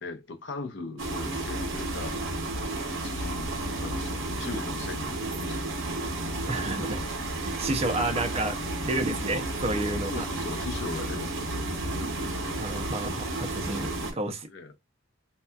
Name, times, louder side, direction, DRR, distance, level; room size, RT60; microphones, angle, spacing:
voice 1, 0.0-2.2 3.0-3.5 3.8-5.6 10.1-11.5 14.5-14.8, left 3 dB, 65° left, 0.6 m, -39 dB
sound 1, 1.0-14.1, right 2 dB, 75° right, 0.8 m, -32 dB
voice 2, 6.5-7.0 7.4-10.2 12.6-14.5, right 2 dB, 30° right, 0.5 m, -31 dB
2.7 x 2.3 x 2.2 m
head